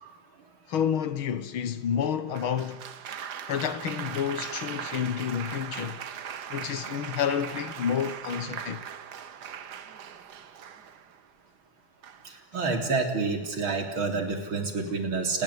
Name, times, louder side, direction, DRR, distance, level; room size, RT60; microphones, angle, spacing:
voice 1, 0.7-2.8 3.5-6.0 6.5-8.8, left 8 dB, 75° left, 2.3 m, -29 dB
Applause, 2.3-11.2 12.0-12.4, right 8 dB, 55° right, 1.7 m, -39 dB
voice 2, 12.5-15.4, right 4 dB, 70° right, 4.2 m, -28 dB
29.0 x 21.5 x 8.3 m
omnidirectional pair, 2.3 m